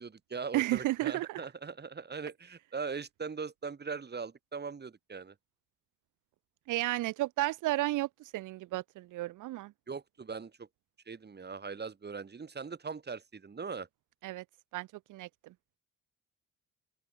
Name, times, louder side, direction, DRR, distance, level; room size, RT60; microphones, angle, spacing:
voice 1, 0.0-5.3 9.9-10.7 11.1-13.9, right 5 dB, 35° right, 3.8 m, -40 dB
voice 2, 0.5-1.4 6.7-9.7 14.2-14.4 14.7-15.3, right 17 dB, 85° right, 1.0 m, -32 dB
open air
cardioid pair, 90°, 30 cm